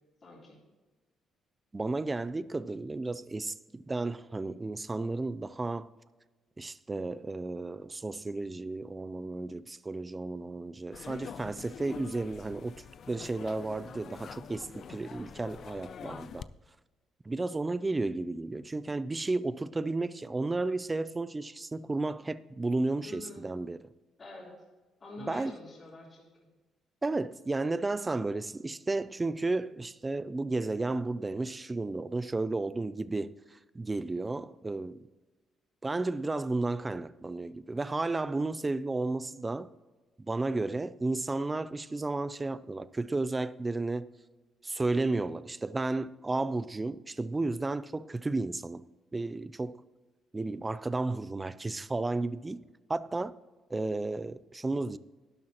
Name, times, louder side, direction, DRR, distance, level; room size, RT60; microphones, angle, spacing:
voice 1, 0.2-0.6 23.0-23.5 24.2-24.5 25.0-26.3 45.0-45.2, left 2 dB, 35° left, 3.3 m, -47 dB
voice 2, 1.7-5.9 6.6-16.5 17.3-23.8 25.2-25.6 27.0-35.1 35.8-39.7 40.2-44.1 44.6-48.8 49.1-49.8 50.3-52.6 52.9-53.3 53.7-55.0, right 2 dB, 15° right, 0.4 m, -33 dB
sound 1, 10.9-16.4, left 7 dB, 50° left, 0.4 m, -46 dB
12.0 x 11.5 x 2.9 m
cardioid pair, 125°, 0 cm